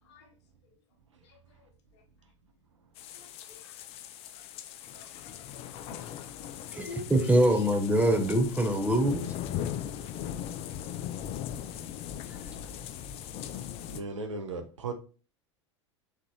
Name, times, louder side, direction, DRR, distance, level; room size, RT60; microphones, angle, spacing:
sound 1, 3.0-14.0, left 10 dB, 40° left, 0.4 m, -39 dB
voice 1, 3.1-3.7 4.3-4.4 4.9-5.6 5.9-6.3 6.7-7.7, left 1 dB, 65° left, 1.0 m, -46 dB
voice 2, 6.7-9.3, right 1 dB, 10° right, 0.8 m, -24 dB
voice 3, 13.9-14.9, right 3 dB, 85° right, 0.6 m, -37 dB
3.7 x 3.4 x 2.7 m
hypercardioid pair, 85°, 15 cm